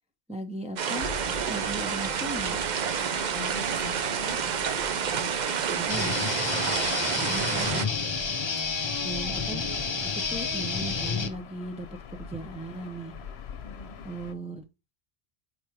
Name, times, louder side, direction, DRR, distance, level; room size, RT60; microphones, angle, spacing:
voice 1, 0.3-1.1 1.5-2.6 5.7-6.3 7.2-7.9 9.0-9.6 10.1-13.1 14.0-14.6, right 1 dB, 10° right, 0.5 m, -37 dB
sound 1, 0.8-7.9, right 7 dB, 50° right, 0.7 m, -29 dB
Gull seagull / Ocean, 0.9-14.3, left 6 dB, 80° left, 1.0 m, -44 dB
voice 2, 3.1-4.5 5.1-5.6 6.6-7.1 13.6-14.1, left 4 dB, 55° left, 1.1 m, -43 dB
sound 2, 5.9-11.3, left 4 dB, 30° left, 0.6 m, -30 dB
4.7 x 4.5 x 4.9 m
omnidirectional pair, 1.0 m